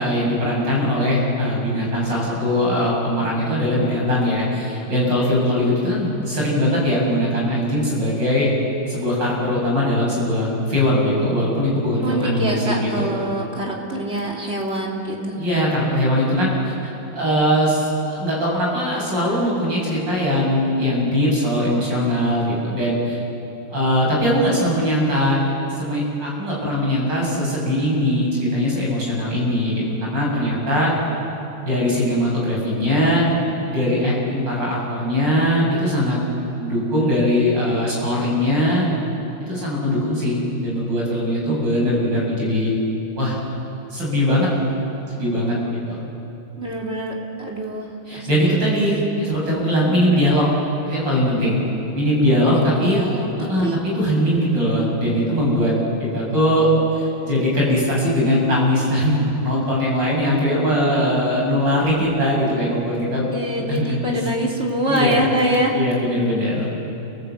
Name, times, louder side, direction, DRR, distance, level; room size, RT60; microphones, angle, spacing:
voice 1, 0.0-8.5 8.9-13.1 15.4-23.2 23.7-25.4 25.8-30.9 31.6-33.3 33.7-36.2 36.5-38.9 39.4-42.7 43.2-43.4 43.9-44.5 45.1-45.5 45.9-46.0 48.1-50.5 50.8-51.6 51.9-53.0 53.4-55.7 56.0-63.3 63.8-64.2 64.9-65.3 65.7-66.7, equal, 55° right, -4 dB, 8.1 m, -20 dB
voice 2, 12.0-15.4 46.6-48.5 51.9-52.3 52.5-53.8 54.6-54.9 60.2-60.8 63.3-65.7, right 1 dB, 30° right, -2 dB, 3.5 m, -25 dB
29.0 x 18.5 x 8.4 m, 2.8 s
omnidirectional pair, 2.4 m